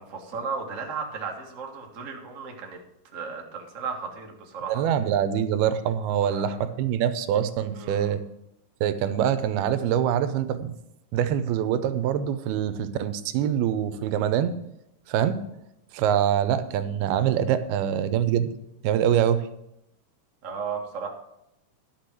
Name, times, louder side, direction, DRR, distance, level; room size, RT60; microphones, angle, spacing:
voice 1, 0.0-2.8 3.1-4.8 6.2-6.6 7.8-8.1 20.4-21.1, right 5 dB, 40° right, 0 dB, 1.1 m, -35 dB
voice 2, 4.7-8.2 8.8-10.7 11.1-14.6 15.1-15.4 15.9-18.5 18.8-19.4, right 9 dB, 85° right, 12 dB, 2.7 m, -24 dB
12.0 x 6.1 x 7.6 m, 0.83 s
omnidirectional pair, 4.4 m